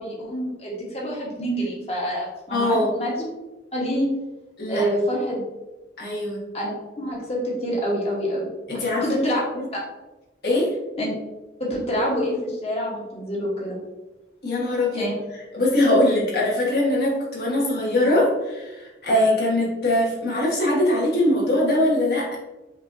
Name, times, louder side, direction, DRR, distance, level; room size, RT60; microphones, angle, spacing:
voice 1, 0.0-3.1 3.7-4.1 4.7-5.3 6.5-6.7 7.0-8.5 8.8-9.4 11.0-11.1 11.6-13.8 14.9-15.1, equal, 35° left, -4 dB, 1.1 m, -26 dB
voice 2, 2.5-2.9 4.6-4.9 6.0-6.4 8.7-9.3 9.5-9.7 10.4-10.8 14.4-15.1 15.5-22.4, left 1 dB, 55° left, -4 dB, 1.3 m, -22 dB
5.4 x 2.7 x 2.6 m, 1.1 s
head